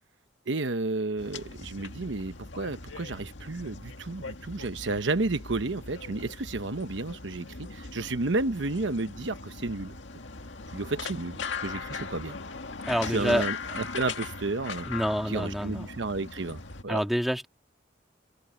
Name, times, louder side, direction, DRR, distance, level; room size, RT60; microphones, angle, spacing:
voice 1, 0.5-9.9 10.7-12.4 13.0-14.9 15.3-17.0, right 2 dB, 80° right, 1.0 m, -32 dB
sound 1, 1.2-16.8, left 4 dB, 80° left, 1.9 m, -40 dB
voice 2, 12.9-13.5 14.9-15.9 16.9-17.5, equal, ahead, 2.0 m, -27 dB
head